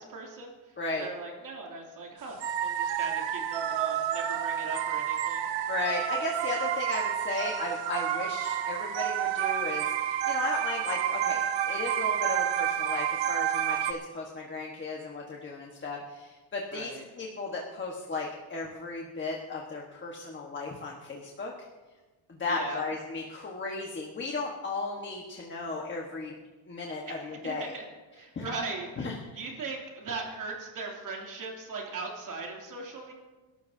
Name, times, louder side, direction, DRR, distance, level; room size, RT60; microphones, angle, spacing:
voice 1, 0.1-5.4 16.7-17.0 22.5-22.8 27.1-27.8 28.1-33.1, right 3 dB, 40° right, -1 dB, 2.9 m, -39 dB
sound 1, 2.4-13.9, right 10 dB, 65° right, 1.2 m, -29 dB
voice 2, 5.7-21.5 22.3-26.3 26.7-27.7 28.3-28.5 29.0-29.4, left 3 dB, 25° left, -2 dB, 1.3 m, -35 dB
29.5 x 12.5 x 2.8 m, 1.3 s
cardioid pair, 165°, 47 cm